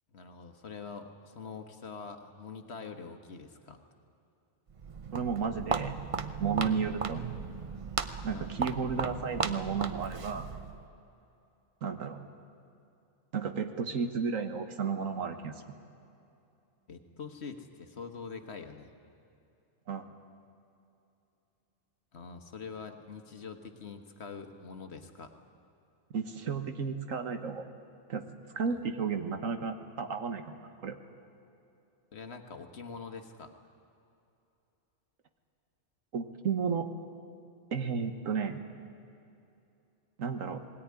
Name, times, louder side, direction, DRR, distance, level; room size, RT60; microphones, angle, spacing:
voice 1, 0.1-3.8 8.3-8.7 16.9-18.9 22.1-25.3 28.7-28.8 32.1-33.5, left 5 dB, 55° left, 6 dB, 1.6 m, -44 dB
Walk footsteps, 4.7-10.8, right 5 dB, 40° right, 0.5 m, -36 dB
voice 2, 5.1-6.0 6.4-7.4 8.2-10.5 11.8-12.2 13.3-15.6 19.9-20.1 26.1-27.7 28.1-28.2 28.5-31.0 36.1-36.9 37.7-38.6 40.2-40.6, right 5 dB, 90° right, 7 dB, 1.7 m, -33 dB
19.5 x 17.5 x 9.7 m, 2.7 s
omnidirectional pair, 1.3 m